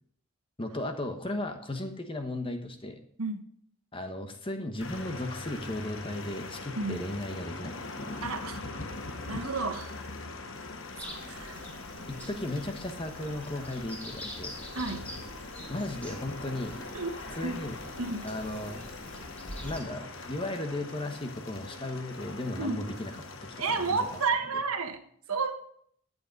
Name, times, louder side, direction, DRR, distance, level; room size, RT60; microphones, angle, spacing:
voice 1, 0.6-3.0 3.9-8.3 12.1-14.6 15.7-16.8 17.3-17.8 18.2-18.8 19.6-23.1 23.4-24.0, left 1 dB, 25° left, 6 dB, 1.1 m, -36 dB
sound 1, 4.8-24.3, left 3 dB, 60° left, 1.1 m, -42 dB
voice 2, 8.2-8.6 9.3-9.9 11.0-11.6 14.7-15.1 16.9-17.1 17.4-17.6 18.0-18.2 22.6-22.8 23.6-25.0 25.3-25.5, right 4 dB, 80° right, 6 dB, 1.4 m, -31 dB
sound 2, 11.0-19.8, equal, 5° left, 2.3 m, -46 dB
12.0 x 8.1 x 5.3 m, 0.65 s
head